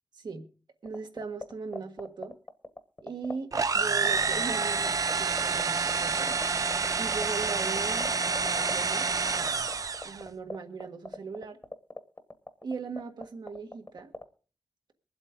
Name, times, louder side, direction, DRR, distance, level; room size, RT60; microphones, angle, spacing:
sound 1, 0.8-14.2, left 2 dB, 30° left, 1.2 m, -38 dB
voice 1, 0.8-2.3 3.0-6.3 7.0-9.1 10.0-11.6 12.6-14.1, right 4 dB, 80° right, 5 dB, 1.6 m, -39 dB
sound 2, 3.5-10.2, right 4 dB, 55° right, 0.5 m, -28 dB
23.5 x 7.9 x 3.7 m, 0.38 s
wide cardioid pair, 125°, 7 cm